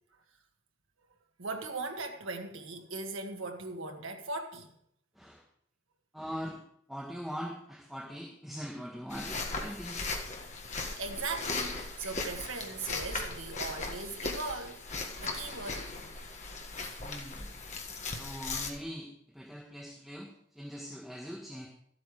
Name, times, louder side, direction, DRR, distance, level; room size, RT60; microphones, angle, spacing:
voice 1, 1.4-4.7 10.7-14.8 15.2-15.9, right 3 dB, 80° right, 1.7 m, -39 dB
voice 2, 6.1-6.6 6.9-10.0 16.7-17.5 18.1-21.7, equal, ahead, 1.5 m, -42 dB
sound 1, 9.1-18.7, left 3 dB, 35° left, 1.6 m, -38 dB
13.5 x 8.6 x 4.9 m
head